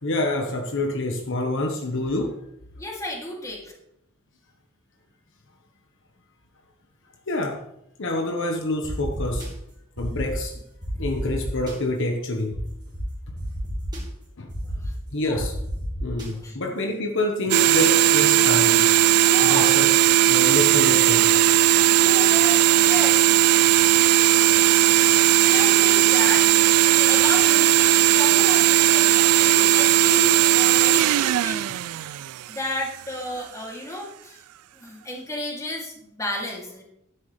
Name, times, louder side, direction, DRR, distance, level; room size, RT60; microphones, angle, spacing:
voice 1, 0.0-2.4 7.3-7.6 8.0-9.5 10.0-10.6 11.0-12.5 14.4-14.5 15.1-15.5 16.0-18.9 19.4-19.9 20.3-21.4, left 2 dB, 60° left, 3 dB, 1.2 m, -27 dB
voice 2, 2.8-3.7 14.6-15.5 16.3-16.6 17.3-18.1 19.3-20.2 21.9-23.4 25.0-32.1 32.5-34.4 34.7-36.8, left 1 dB, 15° left, -1 dB, 2.6 m, -33 dB
sound 1, 8.8-9.5 10.0-10.3 10.8-11.7 12.5-12.6 12.9-13.0 13.4-14.0 14.5-14.9 15.3-16.3, equal, 20° right, 3.4 m, -33 dB
sound 2, 17.5-32.7, right 13 dB, 90° right, 0.3 m, -17 dB
12.0 x 10.5 x 3.2 m, 0.79 s
head